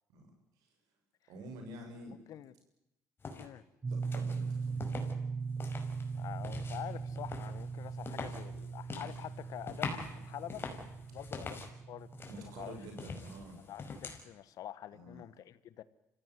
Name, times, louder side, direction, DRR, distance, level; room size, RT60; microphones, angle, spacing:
voice 1, 1.3-2.2 3.9-4.8 11.4-11.5 12.3-13.6 14.9-15.2, right 1 dB, 90° right, 4 dB, 7.0 m, -48 dB
voice 2, 2.1-2.5 3.4-3.6 6.1-10.6 11.1-12.1 12.4-12.8 13.7-15.8, left 12 dB, 75° left, 16 dB, 1.3 m, -46 dB
Footsteps Indoor Soft, 3.2-3.5 4.0-5.1 5.5-11.7 12.1-14.2, left 4 dB, 40° left, 5.3 m, -45 dB
sound 1, 3.8-13.4, right 5 dB, 30° right, 1.0 m, -40 dB
25.5 x 16.5 x 9.3 m, 0.88 s
cardioid pair, 75°, 6 cm